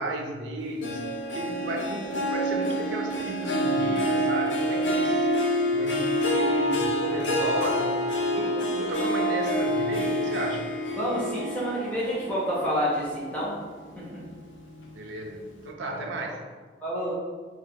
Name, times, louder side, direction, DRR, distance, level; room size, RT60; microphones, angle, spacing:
voice 1, 0.0-5.3 5.7-8.1 8.3-10.7 14.9-16.4, right 1 dB, 75° right, 2 dB, 0.4 m, -34 dB
Harp, 0.8-13.5 14.0-14.4 14.8-14.9, equal, 90° left, 0.3 m, -27 dB
voice 2, 11.0-13.5 14.0-14.2 15.9-16.0 16.8-17.1, equal, 10° left, -8 dB, 0.5 m, -28 dB
2.2 x 2.1 x 2.6 m, 1.5 s
head